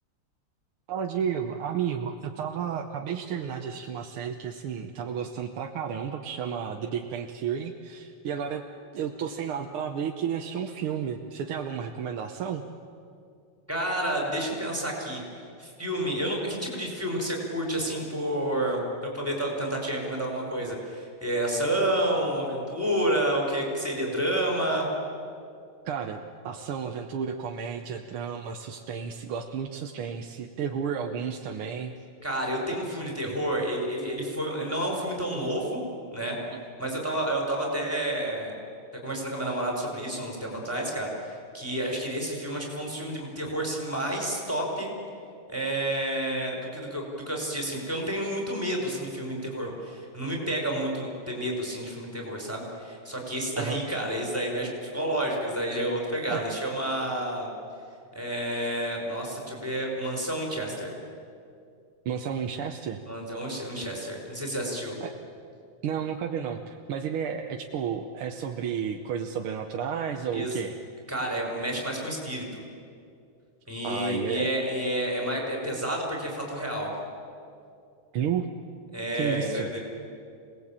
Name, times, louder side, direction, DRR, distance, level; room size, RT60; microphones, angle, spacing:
voice 1, 0.9-8.6 8.9-12.6 25.9-31.9 32.7-33.0 53.6-53.8 56.3-56.5 62.1-63.0 65.0-65.1 65.8-70.8 73.8-74.5 78.1-78.5 79.1-79.7, right 7 dB, 90° right, 3 dB, 1.9 m, -32 dB
voice 2, 13.7-15.2 15.6-24.9 32.2-35.8 36.1-36.4 36.8-38.5 39.0-44.9 45.5-57.5 58.1-60.9 63.1-65.0 70.3-70.6 71.1-72.6 73.7-76.9 78.9-79.8, right 1 dB, 5° right, -1 dB, 5.3 m, -30 dB
26.5 x 19.5 x 8.8 m, 2.4 s
omnidirectional pair, 2.3 m